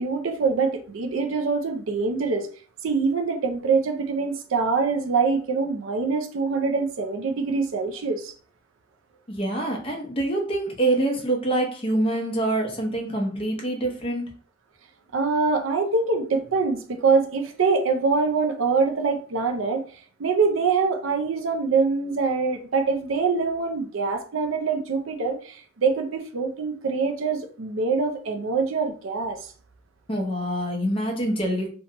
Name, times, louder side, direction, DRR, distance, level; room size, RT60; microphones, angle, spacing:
voice 1, 0.0-2.5 2.8-8.3 15.1-19.8 20.2-29.5, right 4 dB, 75° right, 5 dB, 0.5 m, -24 dB
voice 2, 9.3-14.3 30.1-31.7, right 1 dB, 25° left, 1 dB, 0.7 m, -25 dB
2.9 x 2.2 x 2.9 m, 0.43 s
head